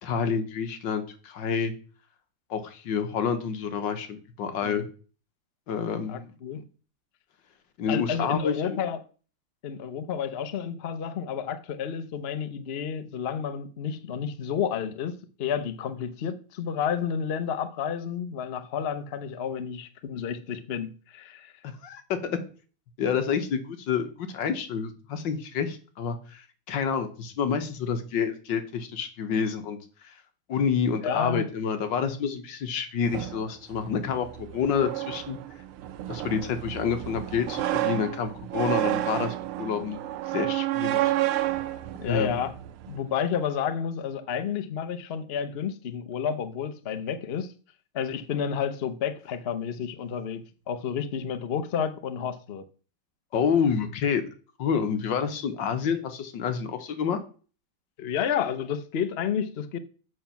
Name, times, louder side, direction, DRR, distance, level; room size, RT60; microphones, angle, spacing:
voice 1, 0.0-1.7 2.5-4.9 5.7-6.3 6.6-6.7 7.8-8.8 21.6-22.4 23.0-29.8 30.0-30.1 30.5-35.4 36.1-40.0 40.3-41.1 42.0-42.4 53.3-54.2 54.6-57.2, left 6 dB, 60° left, 1.8 m, -28 dB
voice 2, 6.1-6.6 7.9-9.0 9.6-21.5 31.0-31.5 42.0-42.5 42.9-47.5 47.9-52.6 58.0-59.8, left 7 dB, 85° left, 0.5 m, -31 dB
sound 1, 33.0-43.0, right 15 dB, 85° right, 1.6 m, -30 dB
7.9 x 6.2 x 5.8 m
omnidirectional pair, 2.3 m